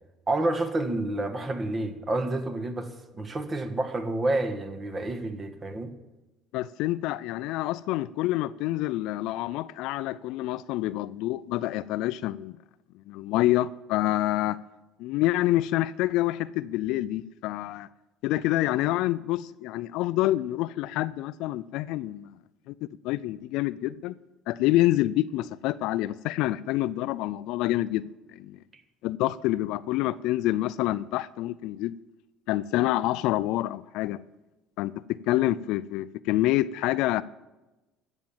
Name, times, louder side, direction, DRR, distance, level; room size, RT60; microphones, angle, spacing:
voice 1, 0.3-5.9, right 2 dB, 30° right, 1.5 m, -29 dB
voice 2, 6.5-12.6 13.1-14.6 15.0-17.9 18.2-22.3 22.7-22.8 23.0-24.1 24.5-28.6 29.0-31.9 32.5-34.2 34.8-37.2, left 15 dB, 75° left, 0.4 m, -27 dB
13.0 x 7.3 x 7.3 m
supercardioid pair, 85°, 0 cm